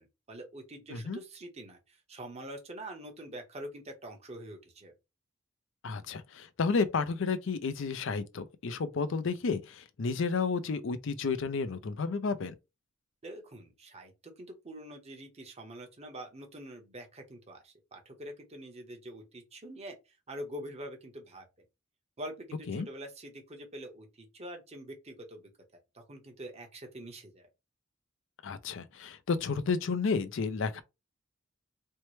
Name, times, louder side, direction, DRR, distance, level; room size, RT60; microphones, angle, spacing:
voice 1, 0.0-4.9 13.2-21.4 22.2-25.5 25.9-27.5, right 1 dB, 35° right, 0.9 m, -45 dB
voice 2, 5.8-12.6 22.7-22.9 28.4-30.8, left 4 dB, 70° left, 0.5 m, -31 dB
4.4 x 2.1 x 3.1 m
head